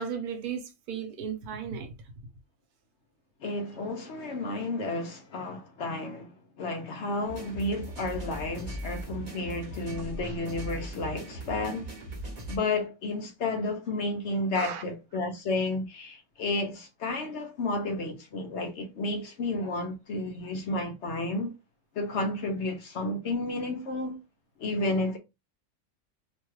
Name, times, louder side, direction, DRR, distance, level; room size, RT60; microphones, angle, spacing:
voice 1, 0.0-1.9 14.5-14.8, right 7 dB, 85° right, 1.2 m, -35 dB
voice 2, 3.4-11.9 12.5-21.6 21.9-24.2 24.6-25.2, left 2 dB, 60° left, 0.8 m, -32 dB
sound 1, 7.2-12.6, right 1 dB, 35° right, 0.8 m, -39 dB
2.8 x 2.3 x 3.1 m
omnidirectional pair, 1.5 m